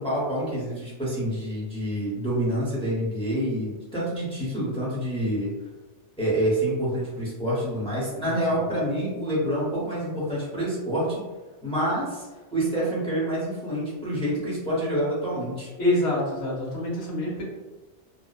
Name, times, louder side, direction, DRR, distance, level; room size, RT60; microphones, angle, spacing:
voice 1, 0.0-5.5 6.2-11.2 11.6-12.3 12.5-15.7, right 1 dB, 5° left, -8 dB, 0.7 m, -27 dB
voice 2, 15.8-17.4, left 1 dB, 80° left, -4 dB, 1.1 m, -26 dB
2.7 x 2.1 x 2.3 m, 1.2 s
omnidirectional pair, 1.1 m